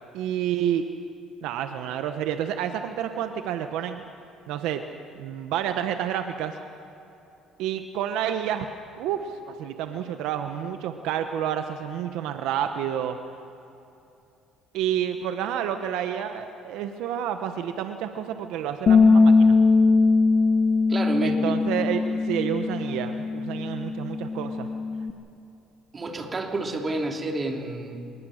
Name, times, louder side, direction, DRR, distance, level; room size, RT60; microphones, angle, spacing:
voice 1, 0.1-0.8 1.4-4.0 4.5-4.8 5.2-6.6 7.6-8.7 9.0-13.2 14.7-19.6 21.2-24.7, right 10 dB, 80° right, 7 dB, 1.0 m, -29 dB
Bass guitar, 18.9-25.1, left 4 dB, 40° left, 1.1 m, -21 dB
voice 2, 20.9-21.6 25.9-28.0, right 2 dB, 30° right, 2 dB, 3.0 m, -29 dB
26.0 x 20.0 x 6.5 m, 2.8 s
cardioid pair, 105°, 0 cm